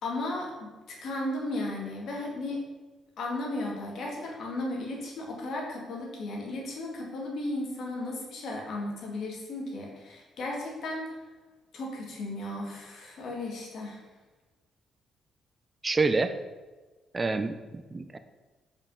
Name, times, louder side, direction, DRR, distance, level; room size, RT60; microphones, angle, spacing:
voice 1, 0.0-2.6 3.2-11.2 11.7-14.0, left 2 dB, 65° left, -1 dB, 2.1 m, -35 dB
voice 2, 15.8-16.3 17.1-18.2, right 3 dB, 25° right, 9 dB, 0.5 m, -27 dB
5.2 x 5.1 x 5.5 m, 1.2 s
cardioid pair, 90°, 0 cm